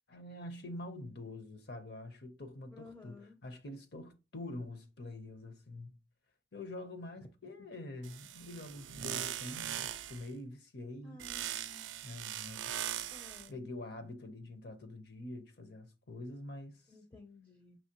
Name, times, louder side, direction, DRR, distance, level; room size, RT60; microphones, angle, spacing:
voice 1, 0.1-3.2 3.4-6.0 6.5-11.2 12.0-12.7 13.0-13.1 13.5-16.8, left 2 dB, 55° left, 0.7 m, -46 dB
voice 2, 2.7-3.4 11.0-11.9 13.1-13.6 16.9-17.8, left 2 dB, 20° left, 0.5 m, -54 dB
sound 1, 8.0-10.3 11.2-13.5, right 11 dB, 80° right, 0.4 m, -40 dB
5.5 x 2.9 x 2.9 m
head